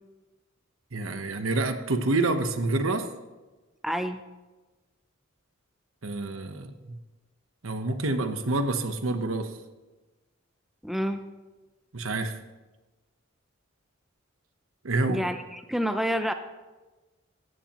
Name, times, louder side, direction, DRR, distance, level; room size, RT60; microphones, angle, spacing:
voice 1, 0.9-3.1 6.0-7.0 7.6-9.5 11.9-12.4 14.8-15.2, right 2 dB, 75° right, 8 dB, 1.1 m, -27 dB
voice 2, 3.8-4.2 10.8-11.2 15.1-16.3, equal, ahead, 7 dB, 0.6 m, -28 dB
16.5 x 14.5 x 3.0 m, 1.2 s
head